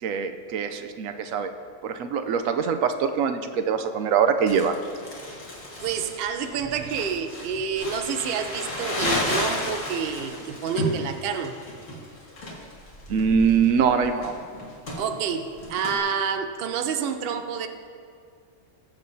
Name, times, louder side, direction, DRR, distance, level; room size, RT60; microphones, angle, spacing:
voice 1, 0.0-1.5 1.8-4.8 13.1-14.3, right 6 dB, 90° right, 8 dB, 1.0 m, -23 dB
Crumpling crinkling, 4.5-16.0, left 1 dB, 70° left, 2.0 m, -33 dB
voice 2, 5.8-11.6 15.0-17.7, right 6 dB, 55° right, 7 dB, 0.7 m, -28 dB
21.0 x 7.5 x 2.7 m, 2.3 s
omnidirectional pair, 1.4 m